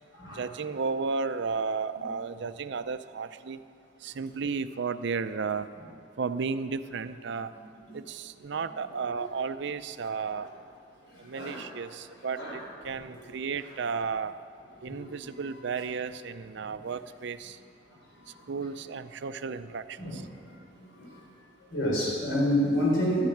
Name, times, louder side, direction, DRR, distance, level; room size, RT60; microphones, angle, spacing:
voice 1, 0.3-3.6 4.0-5.7 6.2-7.5 7.9-10.5 11.2-12.4 12.8-14.3 14.8-17.6 18.5-20.2, right 5 dB, 60° right, 12 dB, 0.5 m, -33 dB
voice 2, 11.1-11.7 12.3-12.6 14.9-15.3 15.7-15.8 16.6-16.8 18.1-18.4 20.0-20.5 20.8-21.2 21.7-23.2, equal, 75° left, -3 dB, 4.4 m, -30 dB
12.0 x 10.5 x 9.2 m, 2.5 s
head